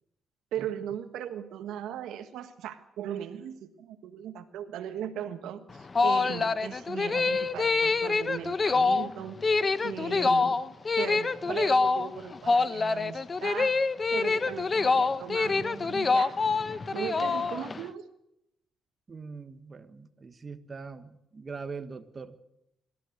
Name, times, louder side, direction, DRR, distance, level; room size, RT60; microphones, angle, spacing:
voice 1, 0.5-9.4 9.8-10.6 10.9-13.7 14.1-16.4 16.9-18.1, right 9 dB, 85° right, 9 dB, 1.4 m, -38 dB
sound 1, 5.7-17.8, left 4 dB, 30° left, 0.9 m, -26 dB
voice 2, 19.1-22.4, right 5 dB, 30° right, 8 dB, 1.5 m, -42 dB
25.0 x 13.5 x 7.9 m, 0.82 s
cardioid pair, 90°, 0 cm